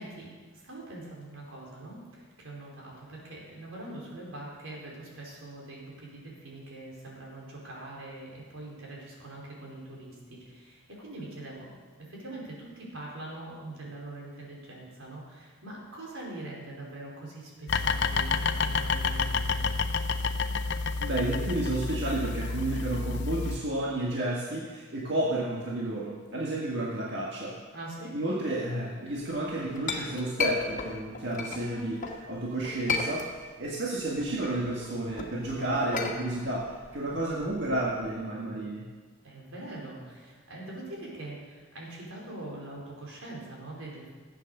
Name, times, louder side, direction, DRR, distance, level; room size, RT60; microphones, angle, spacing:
voice 1, 0.0-19.6 27.7-28.1 31.4-31.8 39.2-44.1, right 2 dB, 90° right, -3 dB, 4.5 m, -43 dB
sound 1, 17.7-23.6, left 4 dB, 60° left, 0.7 m, -29 dB
voice 2, 21.0-27.6 28.1-32.0 32.3-38.9, right 1 dB, 60° right, -4 dB, 1.8 m, -31 dB
Chink clink, 29.3-32.2 32.6-33.7 34.0-38.1, left 4 dB, 40° left, 1.6 m, -34 dB
14.5 x 8.6 x 6.8 m, 1.5 s
head